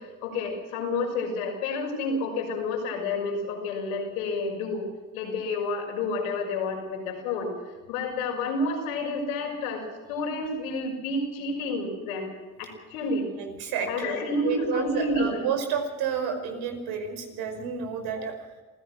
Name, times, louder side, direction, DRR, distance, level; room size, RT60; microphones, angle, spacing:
voice 1, 0.0-7.5 7.9-9.8 10.1-12.3 12.6-13.3 13.9-15.4, left 2 dB, 75° left, 1 dB, 6.2 m, -30 dB
voice 2, 13.4-18.3, right 6 dB, 60° right, 5 dB, 5.3 m, -30 dB
26.5 x 16.0 x 6.4 m, 1.3 s
hypercardioid pair, 65°, 42 cm